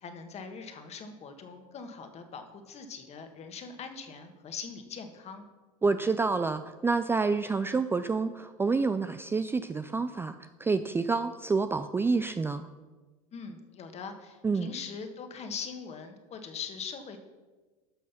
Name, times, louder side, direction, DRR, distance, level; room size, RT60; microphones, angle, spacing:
voice 1, 0.0-5.4 13.3-17.2, left 5 dB, 35° left, 7 dB, 1.6 m, -41 dB
voice 2, 5.8-12.7 14.4-14.7, right 4 dB, 15° right, 10 dB, 0.4 m, -28 dB
12.0 x 6.2 x 5.8 m, 1.3 s
hypercardioid pair, 95°, 18 cm